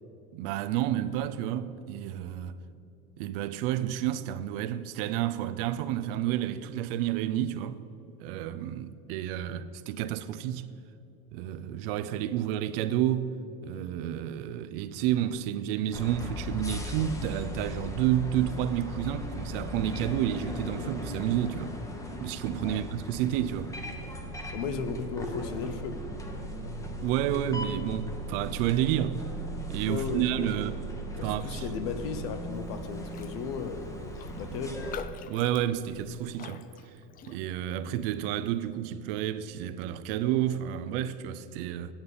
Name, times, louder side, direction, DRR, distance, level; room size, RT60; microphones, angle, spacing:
voice 1, 0.3-2.5 3.2-7.8 8.2-10.7 11.3-13.4 13.6-21.7 22.2-23.7 27.0-29.2 29.7-30.8 31.2-31.6 34.5-34.6 35.3-36.7 37.3-41.9, right 11 dB, 75° right, 0.6 m, -30 dB
sound 1, 15.9-35.0, equal, 10° left, 0.9 m, -38 dB
voice 2, 24.5-26.0 29.9-30.7 31.2-33.9 34.4-34.9, left 5 dB, 80° left, 0.9 m, -35 dB
Raindrop, 33.0-33.4 33.7-33.8 34.1-37.7 38.2-38.4, left 8 dB, 30° left, 0.4 m, -45 dB
8.8 x 7.9 x 5.5 m
supercardioid pair, 130°, 29 cm